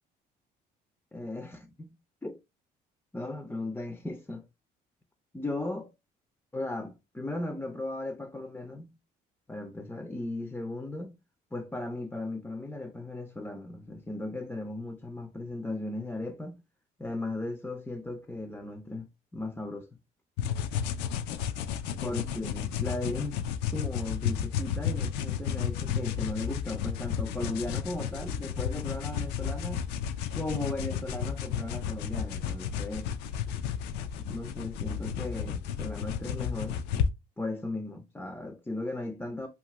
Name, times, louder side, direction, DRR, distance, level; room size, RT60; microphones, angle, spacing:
voice 1, 1.1-2.0 2.2-2.4 3.1-4.5 5.3-5.9 6.5-9.0 9.5-11.2 11.5-16.6 17.0-19.1 19.3-19.9 22.0-23.4 23.7-29.9 30.3-33.1 34.2-36.8 37.4-39.5, left 2 dB, 10° left, 0.4 m, -36 dB
sound 1, 20.4-37.1, left 8 dB, 90° left, 0.4 m, -32 dB
2.6 x 2.4 x 2.9 m
cardioid pair, 110°, 17 cm